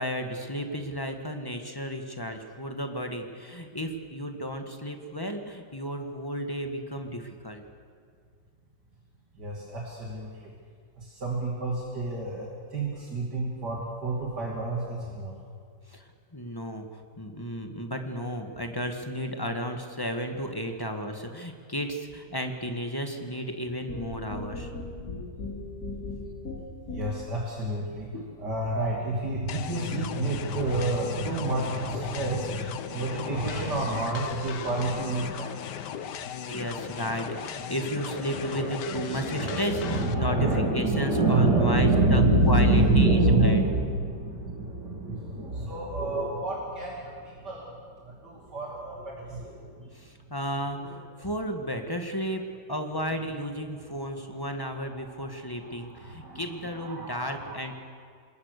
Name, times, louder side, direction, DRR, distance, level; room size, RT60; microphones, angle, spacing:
voice 1, 0.0-7.6 15.9-24.7 36.5-43.6 49.9-52.4 52.7-57.7, equal, 15° left, 5 dB, 1.7 m, -33 dB
voice 2, 9.4-10.5 11.0-15.3 26.9-36.9 37.2-37.5 37.9-47.7 48.0-49.9 55.0-55.1 55.6-57.5, right 2 dB, 65° right, -3 dB, 3.3 m, -28 dB
sound 1, 23.9-27.4, left 3 dB, 55° left, 3.4 m, -38 dB
sound 2, 29.5-40.1, left 9 dB, 70° left, 1.5 m, -38 dB
27.5 x 20.5 x 6.7 m, 2.2 s
omnidirectional pair, 1.9 m